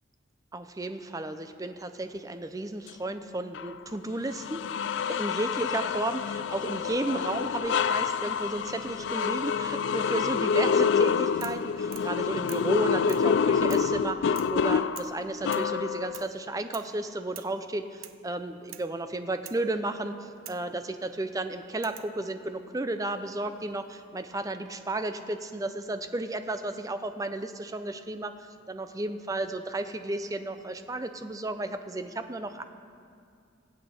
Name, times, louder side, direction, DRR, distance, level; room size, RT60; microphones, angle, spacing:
voice 1, 0.5-4.6 5.0-32.6, right 2 dB, 15° right, 9 dB, 0.5 m, -33 dB
sound 1, 3.5-3.7 4.3-16.3, left 6 dB, 60° left, 0.3 m, -27 dB
sound 2, 11.4-11.7 11.9-12.1 12.5-12.7 13.1-13.3 13.7-13.9 14.4-14.6 15.0-15.2 15.5-15.7 16.1-16.3 16.7-16.9 17.4-17.6 18.0-18.2 18.7-18.9 19.5-19.7 20.5-20.7 21.8-22.2 23.3-23.8, right 12 dB, 90° right, 0.6 m, -46 dB
22.0 x 8.3 x 4.3 m, 2.4 s
head